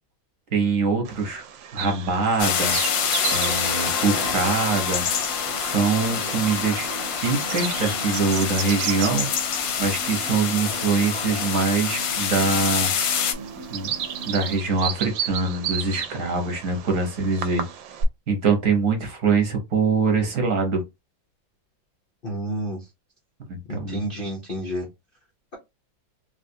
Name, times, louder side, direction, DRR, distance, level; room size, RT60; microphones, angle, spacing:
voice 1, 0.5-1.4 1.7-2.8 3.3-5.1 5.6-6.9 7.2-9.3 9.8-12.9 13.7-13.9 14.3-17.7 18.3-20.8 23.5-24.0, right 4 dB, 50° right, 1.1 m, -23 dB
Bird vocalization bird call bird song, 1.0-18.0, right 8 dB, 80° right, 1.3 m, -35 dB
sound 1, 2.4-13.3, left 7 dB, 65° left, 0.9 m, -26 dB
sound 2, 2.4-14.6, right 3 dB, 20° right, 0.5 m, -39 dB
voice 2, 22.2-22.8 23.7-24.9, right 1 dB, 90° left, 0.4 m, -30 dB
3.5 x 2.4 x 2.7 m
omnidirectional pair, 2.1 m